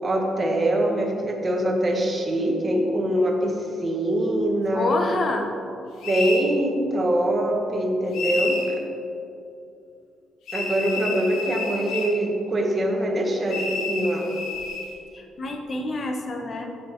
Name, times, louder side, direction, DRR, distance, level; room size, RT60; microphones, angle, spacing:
voice 1, 0.0-4.9 6.0-8.8 10.5-14.3, right 1 dB, 25° right, 1 dB, 1.1 m, -23 dB
voice 2, 4.7-5.5 15.1-16.7, left 2 dB, 30° left, 3 dB, 0.9 m, -27 dB
sound 1, 6.0-6.5 8.1-8.7 10.5-12.2 13.5-14.9, left 3 dB, 80° left, 1.1 m, -30 dB
8.4 x 5.8 x 4.4 m, 2.6 s
cardioid pair, 145°, 0 cm